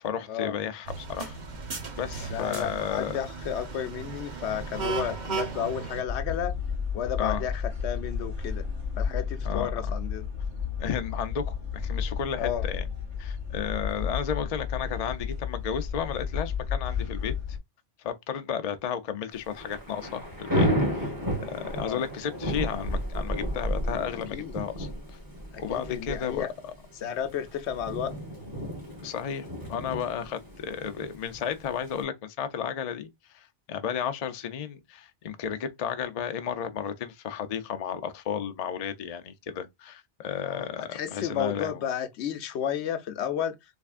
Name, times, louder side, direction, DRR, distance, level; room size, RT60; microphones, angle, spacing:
voice 1, 0.0-1.4 2.0-3.2 7.2-7.4 9.4-9.7 10.8-12.9 13.2-17.6 18.0-21.1 21.4-25.2 25.6-26.7 29.0-41.8, left 8 dB, 50° left, 0.4 m, -33 dB
sound 1, 0.8-6.0, right 4 dB, 45° right, 0.9 m, -35 dB
voice 2, 2.3-6.6 6.9-8.6 9.0-10.3 12.4-12.6 21.8-22.0 24.3-24.6 25.5-26.5 27.0-28.1 40.4-43.6, left 9 dB, 80° left, 0.9 m, -32 dB
sound 2, 6.1-17.6, left 6 dB, 75° right, 2.5 m, -32 dB
Thunder / Rain, 19.4-32.0, equal, 20° right, 1.2 m, -32 dB
3.4 x 3.3 x 2.4 m
omnidirectional pair, 1.2 m